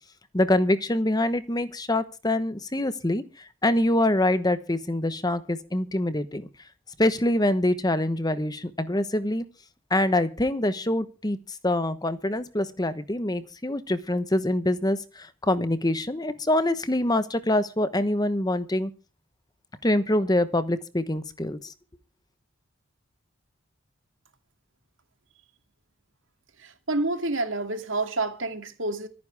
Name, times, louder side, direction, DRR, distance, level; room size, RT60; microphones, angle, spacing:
voice 1, 0.3-3.2 3.6-6.5 7.0-9.4 9.9-18.9 19.8-21.7, left 1 dB, 20° left, 1.1 m, -25 dB
voice 2, 26.6-29.1, right 2 dB, 70° right, 2.6 m, -28 dB
25.5 x 9.7 x 3.5 m
head